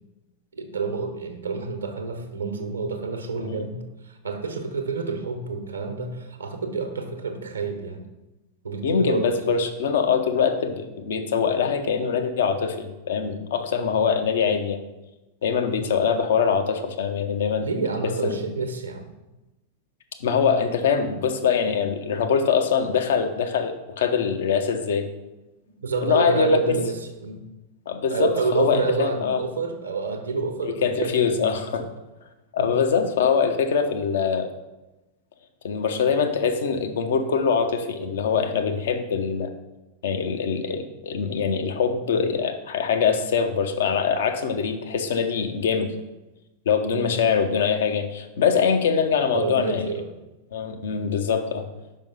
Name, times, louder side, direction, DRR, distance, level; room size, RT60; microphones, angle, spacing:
voice 1, 0.5-3.8 4.0-8.0 8.6-9.3 17.6-19.1 25.8-27.4 28.1-31.5 32.6-32.7 46.8-47.0 49.3-50.1 50.9-51.1, right 4 dB, 75° right, 5 dB, 0.9 m, -28 dB
voice 2, 8.8-14.9 15.4-17.7 18.2-18.4 20.2-25.1 26.0-26.8 27.9-29.4 30.6-31.8 32.5-34.5 35.6-39.5 40.0-45.9 46.7-49.8 50.5-51.6, left 6 dB, 60° left, 6 dB, 0.7 m, -23 dB
5.4 x 5.2 x 5.4 m, 1.0 s
figure-of-eight pair, 90°, 0 cm